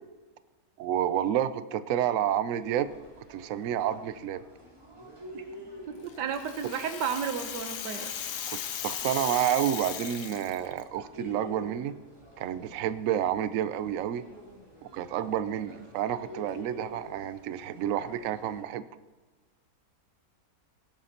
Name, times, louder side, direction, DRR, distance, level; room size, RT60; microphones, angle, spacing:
voice 1, 0.8-2.9 3.3-4.4 8.5-11.9 12.4-14.2 14.9-18.8, right 10 dB, 65° right, 13 dB, 0.9 m, -29 dB
sound 1, 2.6-18.6, equal, 15° right, 4.1 m, -49 dB
voice 2, 5.9-8.1 8.5-8.6, right 7 dB, 90° right, 7 dB, 1.5 m, -33 dB
Rattle (instrument), 6.1-10.8, left 9 dB, 75° left, 1.4 m, -37 dB
18.0 x 12.0 x 2.9 m, 1.3 s
omnidirectional pair, 1.8 m